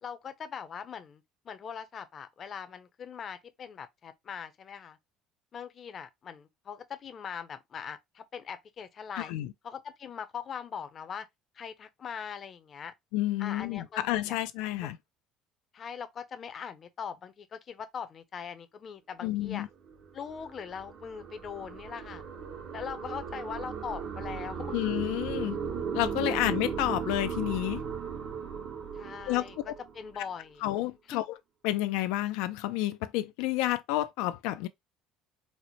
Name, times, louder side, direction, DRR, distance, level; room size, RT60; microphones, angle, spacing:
voice 1, 0.0-5.0 5.5-9.3 9.6-11.3 11.6-12.9 13.4-14.4 14.8-14.9 15.7-19.7 20.1-22.2 22.7-24.7 26.2-26.4 28.9-29.6 29.9-30.6 31.1-31.2, left 7 dB, 35° left, 0.5 m, -41 dB
voice 2, 9.2-9.5 13.1-15.0 19.2-19.7 24.7-25.6 25.9-27.8 29.3-29.7 30.6-31.2 31.6-34.7, left 15 dB, 90° left, 0.3 m, -30 dB
sound 1, 19.6-30.2, right 6 dB, 65° right, 1.0 m, -37 dB
4.1 x 2.1 x 2.9 m
cardioid pair, 145°, 0 cm